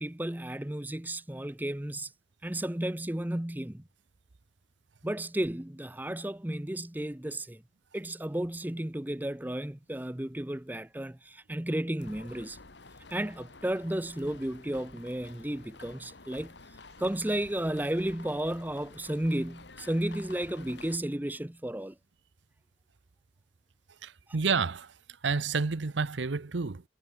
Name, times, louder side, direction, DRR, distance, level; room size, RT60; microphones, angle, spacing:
voice 1, 0.0-2.1 2.4-3.8 5.0-7.6 7.9-12.6 13.1-16.5 17.0-21.9, right 1 dB, 10° right, 0.6 m, -33 dB
sound 1, 12.0-21.0, left 3 dB, 70° left, 2.2 m, -51 dB
voice 2, 24.0-24.9 25.2-26.8, right 5 dB, 80° right, 0.8 m, -29 dB
head